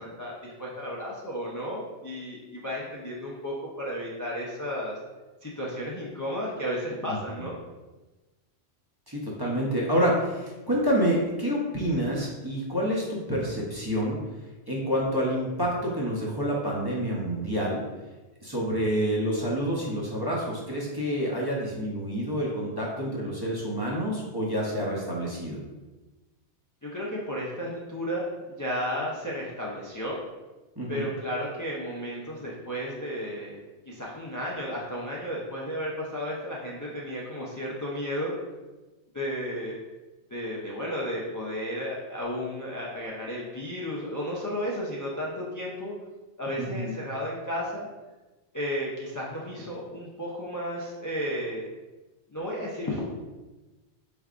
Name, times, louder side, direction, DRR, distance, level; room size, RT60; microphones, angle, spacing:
voice 1, 0.0-4.9 5.4-7.6 26.8-30.2 30.9-38.4 39.1-39.8 40.3-45.9 46.4-47.9 48.5-51.7 52.3-53.0, equal, 30° left, -5 dB, 0.3 m, -33 dB
voice 2, 7.1-7.5 9.1-14.2 14.7-17.8 18.4-25.6 30.8-31.1 46.6-47.0, equal, 25° right, -5 dB, 0.6 m, -28 dB
4.5 x 3.4 x 2.5 m, 1.2 s
omnidirectional pair, 1.2 m